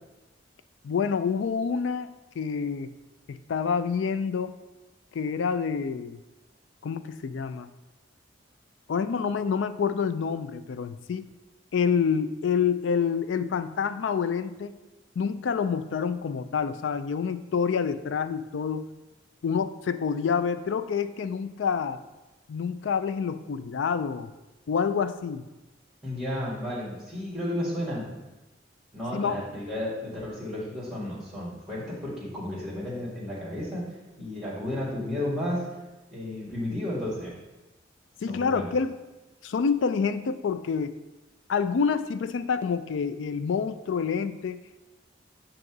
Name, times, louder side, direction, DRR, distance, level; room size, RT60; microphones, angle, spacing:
voice 1, 0.8-2.9 3.3-4.6 5.1-6.2 6.8-7.7 8.9-11.3 11.7-14.8 15.2-18.9 19.4-22.0 22.5-24.3 24.7-25.4 29.1-29.4 38.2-38.9 39.4-40.9 41.5-44.6, left 6 dB, 80° left, 12 dB, 0.4 m, -27 dB
voice 2, 26.0-28.0 28.9-33.8 34.2-35.6 36.1-37.4 38.3-38.7, left 1 dB, ahead, -6 dB, 1.8 m, -32 dB
7.7 x 2.9 x 6.0 m, 1.1 s
head